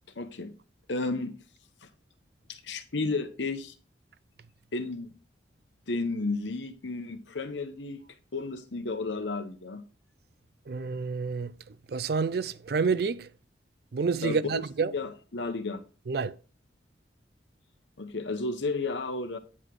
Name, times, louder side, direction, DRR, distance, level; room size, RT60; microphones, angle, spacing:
voice 1, 0.2-0.5 0.9-1.3 2.5-3.7 4.7-5.1 5.9-8.0 8.3-9.8 14.2-14.6 14.9-15.8 18.0-19.4, left 3 dB, 80° left, 1.0 m, -32 dB
voice 2, 10.7-11.5 11.9-13.3 13.9-14.9 16.1-16.4, right 5 dB, 55° right, 0.4 m, -28 dB
9.8 x 4.8 x 3.8 m
head